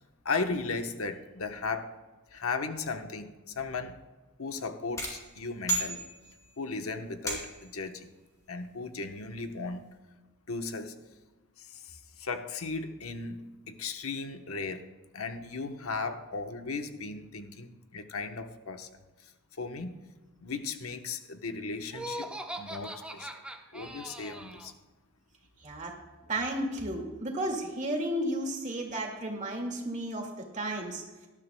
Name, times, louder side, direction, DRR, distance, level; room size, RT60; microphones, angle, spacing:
voice 1, 0.2-1.9 2.3-4.0 4.4-6.1 6.6-8.1 8.5-9.9 10.5-10.9 11.6-14.8 15.1-18.9 19.6-20.0 20.4-22.3 22.6-23.3 23.7-24.7, left 4 dB, 90° left, 6 dB, 1.0 m, -36 dB
sound 1, 5.0-6.6 7.3-7.8, right 2 dB, 15° left, 2.9 m, -34 dB
Laughter, 21.9-24.7, right 1 dB, 5° right, 0.9 m, -40 dB
voice 2, 25.6-25.9 26.3-30.3 30.5-31.0, right 1 dB, 35° right, 1 dB, 2.0 m, -33 dB
18.5 x 12.5 x 2.2 m, 1.2 s
head